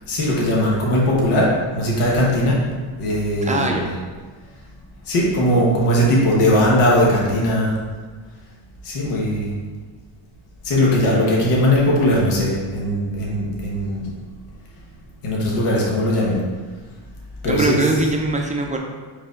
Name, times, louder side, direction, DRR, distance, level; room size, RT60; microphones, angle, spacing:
voice 1, 0.1-2.6 3.0-3.9 5.1-7.8 8.8-9.5 10.6-14.1 15.2-16.4 17.4-17.8, left 1 dB, 90° left, -4 dB, 1.2 m, -19 dB
voice 2, 3.4-3.8 17.4-18.8, right 2 dB, 15° right, 1 dB, 0.5 m, -21 dB
4.7 x 2.7 x 3.7 m, 1.4 s
cardioid pair, 95°, 50 cm